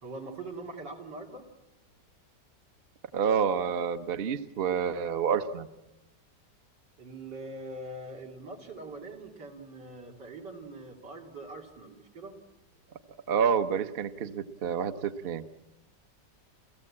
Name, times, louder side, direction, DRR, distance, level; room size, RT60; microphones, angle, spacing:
voice 1, 0.0-1.5 7.0-12.3, right 2 dB, 80° right, 2 dB, 3.4 m, -43 dB
voice 2, 3.1-5.7 13.3-15.4, right 7 dB, 45° right, 11 dB, 0.9 m, -28 dB
30.0 x 14.5 x 8.7 m, 1.0 s
omnidirectional pair, 1.9 m